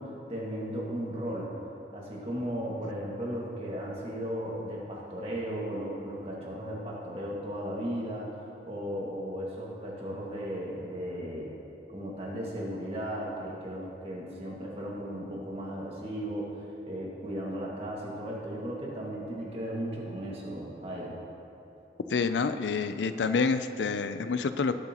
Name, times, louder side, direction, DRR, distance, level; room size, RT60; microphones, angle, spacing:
voice 1, 0.0-1.5 1.9-8.3 8.6-11.5 11.9-21.2, equal, 35° right, -4 dB, 1.9 m, -36 dB
voice 2, 22.1-24.8, left 4 dB, 85° left, 11 dB, 0.4 m, -28 dB
18.0 x 7.8 x 3.0 m, 2.9 s
head